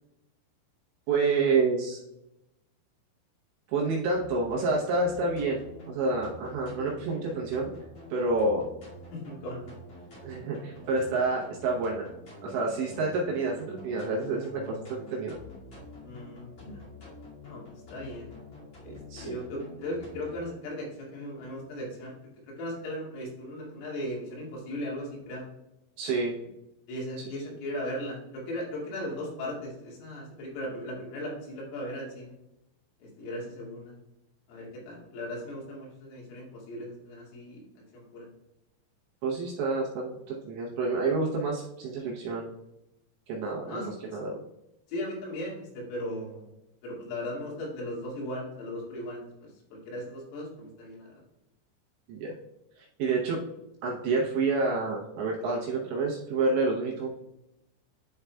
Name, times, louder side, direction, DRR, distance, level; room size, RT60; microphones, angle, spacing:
voice 1, 1.1-2.0 3.7-7.7 8.1-8.7 10.2-12.1 12.4-15.3 19.1-19.4 26.0-26.4 27.2-27.4 39.2-42.5 43.3-44.3 52.1-52.3 52.8-53.4 53.8-57.1, right 3 dB, 75° right, -3 dB, 2.9 m, -28 dB
sound 1, 4.1-20.5, left 1 dB, 45° left, 2.1 m, -47 dB
voice 2, 9.1-9.7 10.7-11.0 16.0-16.8 17.4-17.6 17.9-18.3 18.8-22.2 22.6-25.5 26.9-32.4 33.0-34.0 34.5-37.6 37.9-38.3 43.7-43.9 44.9-46.5 46.8-49.2 49.7-51.2, left 1 dB, 75° left, -4 dB, 4.7 m, -37 dB
11.5 x 4.7 x 2.3 m, 0.88 s
omnidirectional pair, 6.0 m